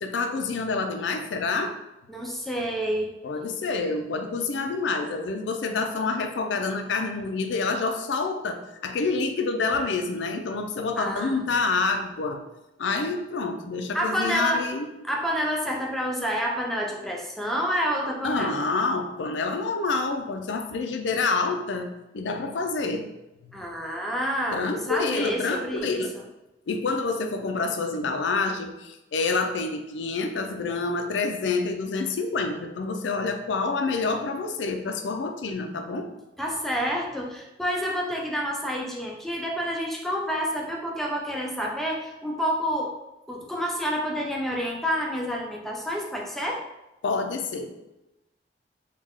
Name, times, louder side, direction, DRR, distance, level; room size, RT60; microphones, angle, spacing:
voice 1, 0.0-1.8 3.2-12.4 12.8-14.9 18.2-23.1 23.4-23.5 24.5-26.1 26.7-36.1 47.0-47.8, left 3 dB, 90° left, 5 dB, 0.4 m, -27 dB
voice 2, 2.1-3.1 11.0-11.4 13.9-14.7 15.0-18.6 23.5-26.2 36.4-42.9 43.3-46.6, equal, ahead, -1 dB, 0.4 m, -28 dB
3.2 x 2.3 x 3.5 m, 0.94 s
head